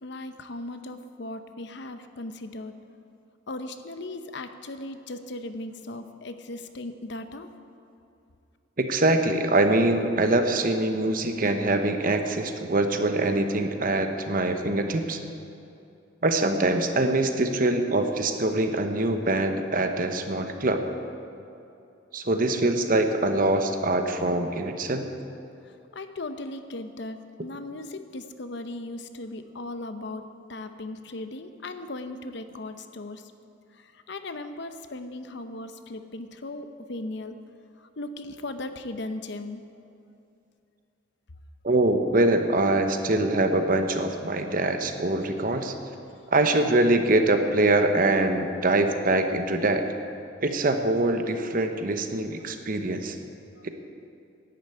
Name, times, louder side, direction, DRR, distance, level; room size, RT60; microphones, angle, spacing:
voice 1, 0.0-2.7 3.5-7.5 25.9-33.2 34.1-37.4 37.8-39.6, left 2 dB, 60° left, 9 dB, 0.8 m, -37 dB
voice 2, 8.8-15.2 16.2-20.8 22.1-25.1 41.6-45.7 46.3-49.8 50.4-53.2 53.6-53.7, right 2 dB, 45° right, 6 dB, 1.0 m, -24 dB
11.0 x 10.0 x 8.6 m, 2.7 s
head